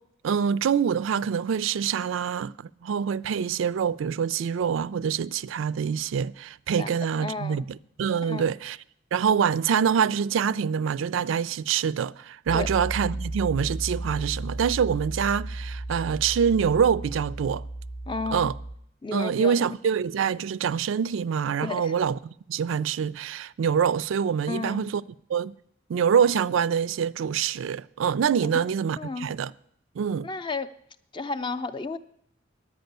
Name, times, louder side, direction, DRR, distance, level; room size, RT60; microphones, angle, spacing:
voice 1, 0.2-2.5 2.8-8.8 9.1-17.6 18.3-18.5 19.1-22.2 22.5-25.0 25.3-25.5 25.9-29.5 30.0-30.3, right 7 dB, 90° right, 0.3 m, -25 dB
voice 2, 6.8-7.7 8.2-8.5 12.5-12.7 18.1-18.5 19.0-19.6 21.6-21.9 24.5-24.8 28.4-28.7 29.0-29.3 30.2-30.7 31.1-32.0, left 3 dB, 25° left, 0.4 m, -33 dB
Piano, 12.5-18.8, right 2 dB, 80° left, 0.7 m, -34 dB
10.5 x 8.5 x 6.7 m
head